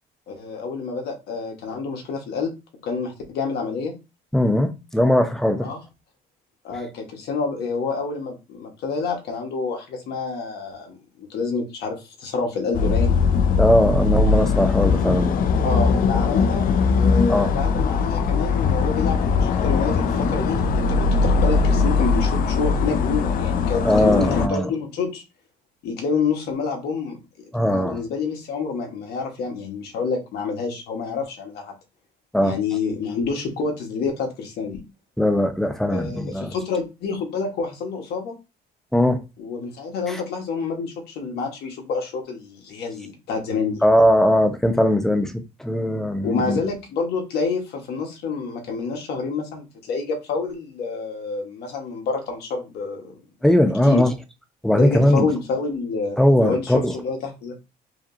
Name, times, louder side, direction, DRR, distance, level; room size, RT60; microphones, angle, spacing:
voice 1, 0.3-2.5 2.8-3.9 5.6-5.8 6.6-13.1 15.6-25.2 25.8-27.2 27.7-31.7 32.4-34.8 35.9-38.3 39.4-43.8 46.2-53.1 53.9-54.0 54.8-57.6, left 4 dB, 75° left, 1.4 m, -28 dB
voice 2, 4.3-5.7 13.6-15.4 17.3-17.5 23.8-24.7 27.5-28.0 32.3-32.6 35.2-36.5 38.9-39.2 40.1-40.2 43.8-46.6 53.4-54.1 54.6-55.3 56.2-56.9, left 1 dB, ahead, 0.7 m, -19 dB
sound 1, 12.7-24.5, left 5 dB, 55° left, 0.5 m, -20 dB
4.9 x 3.0 x 2.7 m
cardioid pair, 110°, 17 cm